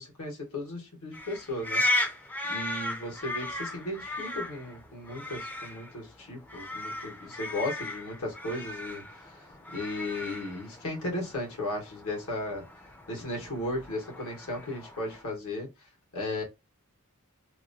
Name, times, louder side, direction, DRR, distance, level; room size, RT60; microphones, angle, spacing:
voice 1, 0.0-2.2 2.5-9.5 9.7-12.6 13.1-15.7 16.1-16.4, left 1 dB, 75° left, 1.3 m, -36 dB
sound 1, 1.1-15.2, left 2 dB, 10° left, 0.4 m, -36 dB
2.9 x 2.2 x 2.6 m
head